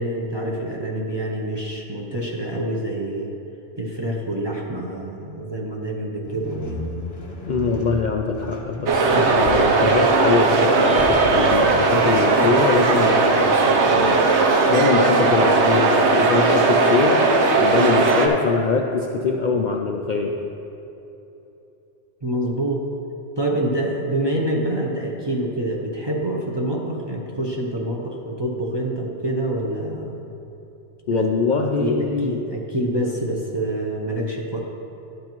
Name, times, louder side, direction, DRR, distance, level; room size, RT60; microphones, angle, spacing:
voice 1, 0.0-3.3 3.8-6.8 22.2-22.8 23.4-30.3 31.1-31.3 31.8-34.6, right 1 dB, 30° right, -2 dB, 0.6 m, -26 dB
sound 1, 6.2-17.4, equal, 25° left, 0.8 m, -36 dB
voice 2, 7.4-14.2 14.7-17.2 17.6-20.3 31.1-32.3, left 4 dB, 60° left, 1 dB, 0.5 m, -23 dB
sound 2, 8.9-18.3, right 3 dB, 75° right, 1.0 m, -17 dB
11.0 x 8.0 x 3.0 m, 3.0 s
omnidirectional pair, 1.2 m